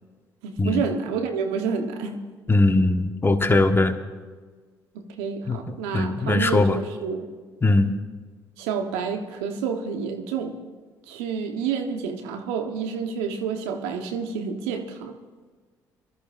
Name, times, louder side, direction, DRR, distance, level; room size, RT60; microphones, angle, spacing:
voice 1, 0.4-2.2 4.9-7.3 8.6-10.5 11.1-15.2, right 6 dB, 80° right, 5 dB, 1.2 m, -29 dB
voice 2, 2.5-3.9 5.5-6.8 7.6-7.9, left 2 dB, 25° left, 6 dB, 1.3 m, -20 dB
22.5 x 13.5 x 2.6 m, 1.4 s
hypercardioid pair, 50°, 10 cm